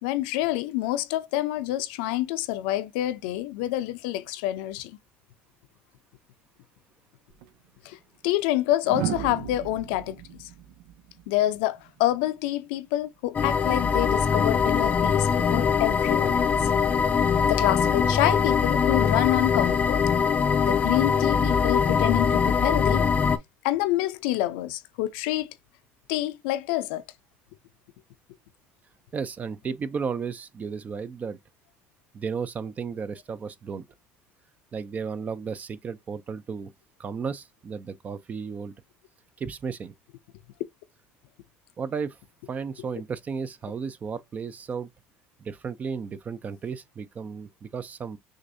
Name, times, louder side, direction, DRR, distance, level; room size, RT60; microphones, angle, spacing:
voice 1, 0.0-5.0 7.8-8.0 8.2-10.2 11.3-16.5 17.4-20.0 20.6-23.0 23.6-25.5 26.1-27.0, left 15 dB, 90° left, 0.6 m, -27 dB
sound 1, 7.3-7.5 8.8-11.9 13.5-13.8, right 11 dB, 85° right, 0.8 m, -35 dB
sound 2, 13.3-23.4, left 6 dB, 25° left, 0.5 m, -22 dB
voice 2, 29.1-31.4 32.1-33.8 34.7-36.7 37.0-38.7 39.4-39.9 41.8-42.2 42.5-44.9 45.4-48.2, right 6 dB, 30° right, 0.5 m, -34 dB
6.4 x 2.6 x 2.6 m
cardioid pair, 125°, 5 cm